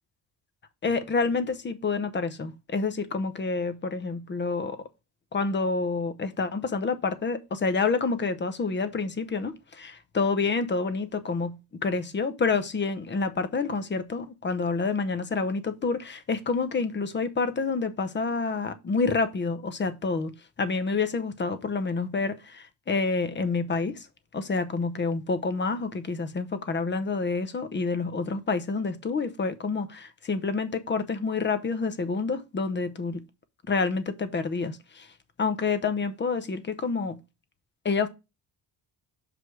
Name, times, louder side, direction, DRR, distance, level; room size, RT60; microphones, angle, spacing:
voice 1, 0.8-4.8 5.3-24.1 24.3-33.2 33.7-35.1 35.4-37.2 37.8-38.1, left 4 dB, 25° left, 0.8 m, -28 dB
6.2 x 5.1 x 4.7 m
cardioid pair, 165°, 40 cm